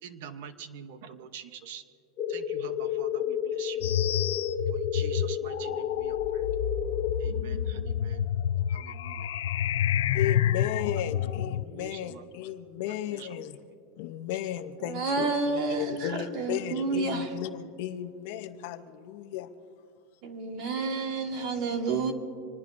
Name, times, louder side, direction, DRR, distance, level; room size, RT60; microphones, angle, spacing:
voice 1, 0.0-1.8 2.3-4.0 4.7-6.5 7.2-8.3 8.7-9.3 11.5-12.3 12.9-13.4, right 8 dB, 55° right, 10 dB, 0.8 m, -45 dB
sound 1, 2.2-7.2, left 8 dB, 25° left, 1.2 m, -31 dB
sound 2, 3.8-11.6, left 10 dB, 90° left, 0.4 m, -29 dB
voice 2, 10.1-13.6 14.0-19.5, left 11 dB, 50° left, 9 dB, 0.7 m, -35 dB
voice 3, 14.8-17.3 20.2-22.1, right 4 dB, 35° right, 4 dB, 1.6 m, -30 dB
25.5 x 20.5 x 2.6 m, 2.4 s
supercardioid pair, 175°, 0 cm